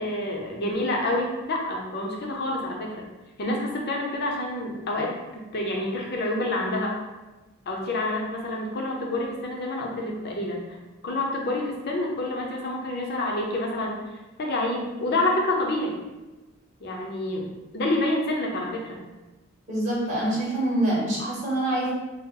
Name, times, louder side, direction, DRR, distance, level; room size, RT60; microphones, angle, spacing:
voice 1, 0.0-3.0 3.4-6.9 7.7-10.6 11.0-14.0 14.4-16.0 16.8-17.5 17.7-19.0, left 1 dB, 45° left, 0 dB, 0.5 m, -28 dB
voice 2, 19.7-21.9, right 1 dB, 35° right, -6 dB, 0.9 m, -25 dB
2.8 x 2.0 x 3.7 m, 1.1 s
head